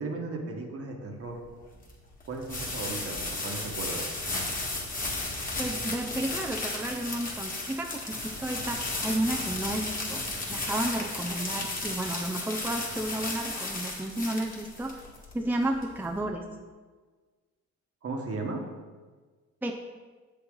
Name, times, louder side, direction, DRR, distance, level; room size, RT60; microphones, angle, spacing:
voice 1, 0.0-1.4 2.3-4.0 18.0-18.6, right 3 dB, 50° right, 2 dB, 1.5 m, -36 dB
sound 1, 1.3-16.2, left 2 dB, 30° left, 1.8 m, -34 dB
voice 2, 5.3-10.2 10.5-15.0 15.3-16.4 19.6-19.7, right 1 dB, 5° right, 2 dB, 0.6 m, -32 dB
7.5 x 6.9 x 3.9 m, 1.4 s
cardioid pair, 90°, 30 cm